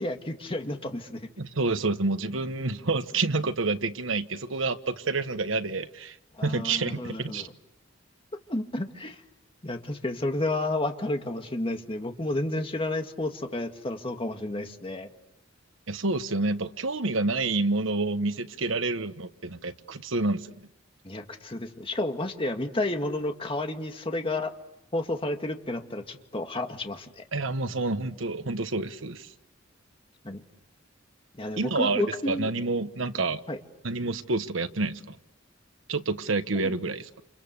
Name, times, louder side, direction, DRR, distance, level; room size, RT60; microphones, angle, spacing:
voice 1, 0.0-1.2 6.4-7.5 8.5-9.2 9.6-15.1 21.0-24.5 24.9-27.2 30.2-30.4 31.4-32.5 33.5-33.6 36.5-36.7, left 2 dB, 30° left, 2.1 m, -31 dB
voice 2, 1.4-6.1 6.4-7.5 15.9-20.6 27.3-29.3 31.6-33.4 33.8-35.1 35.9-37.2, right 3 dB, 90° right, 1.3 m, -28 dB
29.5 x 28.5 x 6.8 m
head